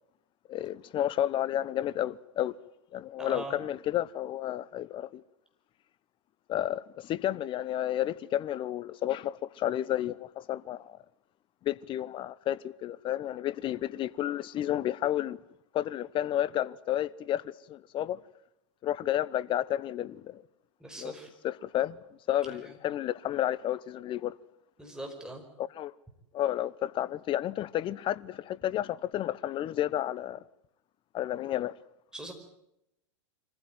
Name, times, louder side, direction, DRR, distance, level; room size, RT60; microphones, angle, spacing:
voice 1, 0.5-2.5 2.9-5.2 6.5-11.0 11.6-15.4 15.7-18.2 18.8-20.4 21.0-21.1 21.4-22.0 22.3-24.3 25.6-25.9 26.3-30.4 31.1-31.7, left 12 dB, 30° left, 0.9 m, -31 dB
voice 2, 3.2-3.6 20.8-21.3 22.5-22.6 24.8-25.4 32.1-32.3, right 2 dB, 5° right, 5.1 m, -41 dB
24.5 x 15.5 x 9.2 m
hypercardioid pair, 110°, 16 cm